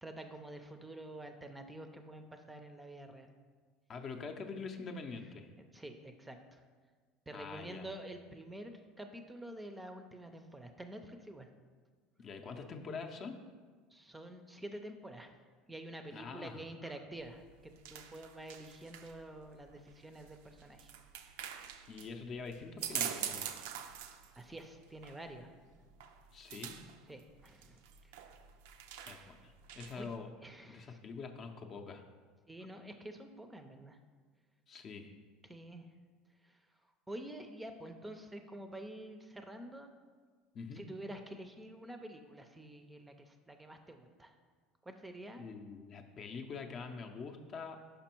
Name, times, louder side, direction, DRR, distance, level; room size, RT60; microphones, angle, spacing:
voice 1, 0.0-3.3 5.7-6.6 7.3-11.5 13.9-15.3 15.7-20.9 24.4-25.5 27.1-28.2 30.0-30.1 30.4-31.0 32.5-34.0 35.4-35.9 36.4-36.6 37.1-39.9 40.7-44.4 44.8-45.4, right 1 dB, 10° right, 6 dB, 0.5 m, -48 dB
voice 2, 3.9-5.5 7.3-7.9 12.2-13.4 16.1-16.9 21.9-23.5 26.3-26.8 29.1-30.3 30.7-32.0 34.7-35.1 40.5-40.8 45.4-48.0, left 4 dB, 40° left, 4 dB, 0.6 m, -45 dB
sound 1, 17.2-30.2, right 9 dB, 80° right, 0.4 m, -45 dB
5.2 x 5.1 x 4.4 m, 1.5 s
supercardioid pair, 105°, 0 cm